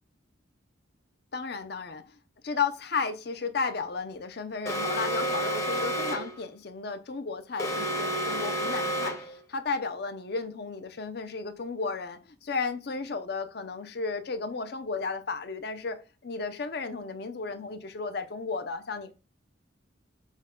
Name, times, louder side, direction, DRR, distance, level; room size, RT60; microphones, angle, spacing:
voice 1, 1.3-2.1 2.4-19.1, left 4 dB, 55° left, 0.6 m, -33 dB
Alarm, 4.7-6.4 7.6-9.4, right 1 dB, 15° left, 0.7 m, -30 dB
6.2 x 2.2 x 3.7 m
head